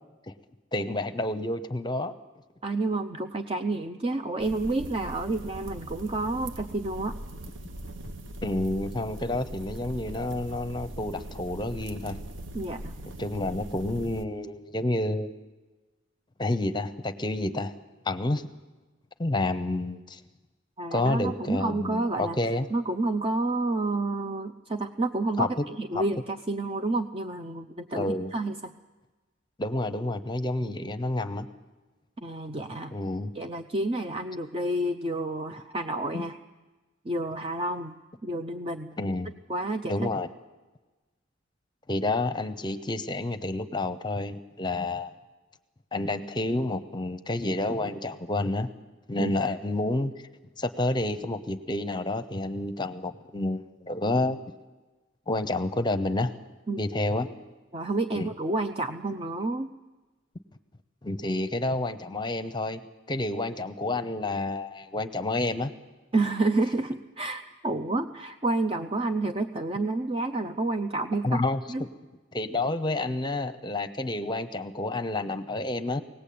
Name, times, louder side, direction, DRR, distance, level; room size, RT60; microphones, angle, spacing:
voice 1, 0.7-2.1 8.4-12.2 13.2-15.3 16.4-17.7 18.0-18.4 19.2-20.2 20.9-22.7 25.4-25.5 25.9-26.0 27.9-28.3 29.6-31.5 32.9-33.3 39.0-39.3 39.9-40.3 41.9-45.1 45.9-48.7 49.1-50.1 50.6-54.4 55.3-56.3 56.8-57.3 58.1-58.3 61.0-62.8 63.1-65.7 71.2-71.9 72.3-76.0, left 2 dB, 25° left, 11 dB, 0.9 m, -29 dB
voice 2, 2.6-7.2 12.5-13.0 20.8-22.4 22.7-25.5 25.8-28.7 32.2-32.9 33.3-36.4 37.0-37.9 38.2-38.9 39.5-39.9 49.2-49.3 56.7-56.8 57.7-59.7 66.1-71.4 71.7-71.8, right 2 dB, 30° right, 6 dB, 0.7 m, -29 dB
sound 1, 4.4-14.3, right 1 dB, 85° right, 1.2 m, -41 dB
23.0 x 18.5 x 8.6 m, 1.2 s
head